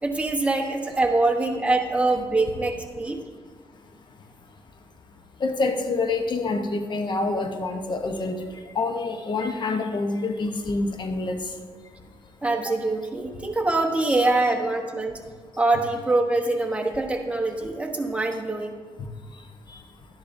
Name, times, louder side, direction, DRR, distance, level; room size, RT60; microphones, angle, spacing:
voice 1, 0.0-3.2 12.4-15.2 15.6-18.7, right 2 dB, 15° right, 2 dB, 1.1 m, -24 dB
voice 2, 5.4-8.4 8.7-11.4 14.1-14.2, left 3 dB, 50° left, 5 dB, 0.9 m, -26 dB
12.5 x 10.5 x 2.7 m, 1.5 s
cardioid pair, 85°, 10 cm